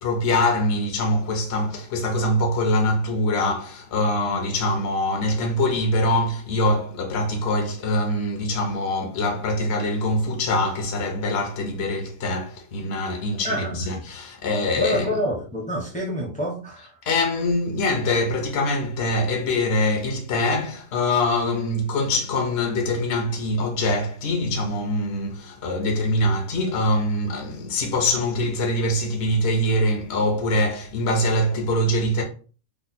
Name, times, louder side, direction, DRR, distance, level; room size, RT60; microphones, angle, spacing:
voice 1, 0.0-15.1 17.0-32.2, left 1 dB, 60° left, 0.7 m, -23 dB
voice 2, 13.4-13.8 14.7-16.9, equal, 10° left, 0.4 m, -27 dB
3.2 x 2.1 x 4.0 m
omnidirectional pair, 1.7 m